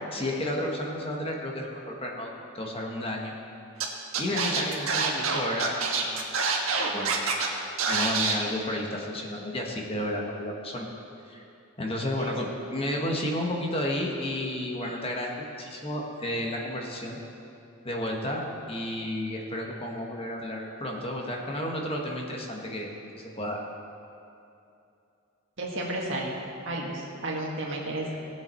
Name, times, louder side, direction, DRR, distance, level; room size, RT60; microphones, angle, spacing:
voice 1, 0.1-2.3 2.5-3.3 4.2-6.4 6.9-7.2 7.8-10.9 11.3-11.4 11.8-17.2 17.8-23.6, left 1 dB, 25° left, 0 dB, 1.3 m, -32 dB
Scratching (performance technique), 3.8-3.9 4.1-7.5 7.8-8.3, right 5 dB, 80° right, 1.5 m, -26 dB
voice 2, 25.6-26.3 26.7-28.2, right 1 dB, 60° right, -2 dB, 1.9 m, -32 dB
18.5 x 7.4 x 4.4 m, 2.7 s
head